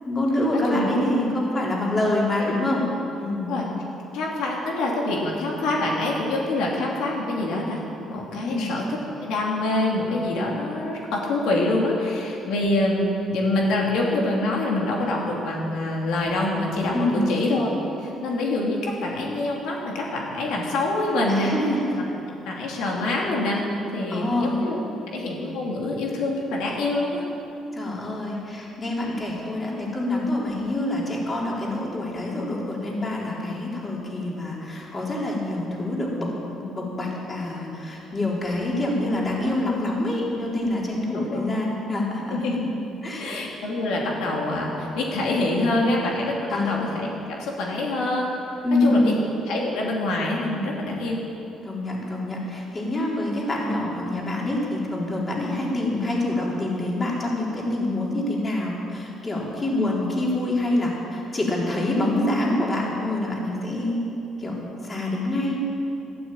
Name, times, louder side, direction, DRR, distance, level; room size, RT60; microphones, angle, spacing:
voice 1, 0.0-2.8 3.2-3.5 8.4-8.6 16.9-17.3 21.3-22.0 24.1-24.6 27.7-42.4 43.0-43.3 46.5-46.8 48.6-49.2 51.6-64.0 64.4-65.6, left 1 dB, 25° left, -3 dB, 3.8 m, -26 dB
voice 2, 4.1-7.8 8.1-8.8 9.2-21.5 22.4-23.6 23.9-24.8 25.1-27.2 41.1-41.6 42.3-42.6 43.2-47.1 47.4-48.3 48.8-49.1 49.5-51.2 55.4-55.6 59.7-59.9, left 2 dB, 85° left, -2 dB, 2.7 m, -25 dB
12.5 x 12.5 x 9.0 m, 2.9 s
cardioid pair, 110°, 0 cm